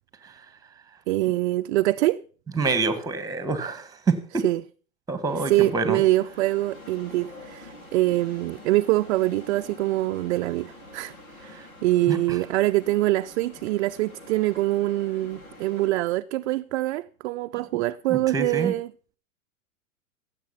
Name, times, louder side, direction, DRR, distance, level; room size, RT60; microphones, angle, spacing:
voice 1, 1.1-2.2 4.4-4.6 5.5-11.1 11.4-18.9, right 17 dB, 55° right, 0.5 m, -24 dB
voice 2, 2.5-4.4 5.1-6.0 12.1-12.4 18.1-18.7, right 4 dB, 10° right, 1.6 m, -26 dB
sound 1, 5.2-15.9, left 1 dB, 80° left, 4.5 m, -46 dB
16.0 x 7.6 x 5.6 m
hypercardioid pair, 115°, 42 cm